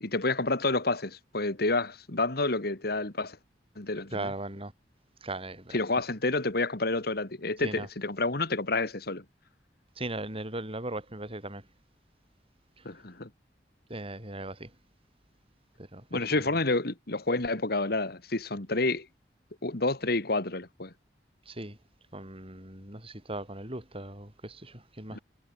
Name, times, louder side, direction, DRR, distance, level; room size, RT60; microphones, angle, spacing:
voice 1, 0.0-3.4 3.8-4.3 5.7-9.2 12.8-13.3 16.1-19.1 19.6-20.9 25.1-25.2, left 2 dB, 60° left, 2.4 m, -29 dB
voice 2, 4.1-4.7 5.2-5.8 7.6-7.9 10.0-11.7 12.8-12.9 13.9-14.8 15.8-16.6 21.5-21.8 22.1-25.2, right 2 dB, 35° right, 6.9 m, -38 dB
head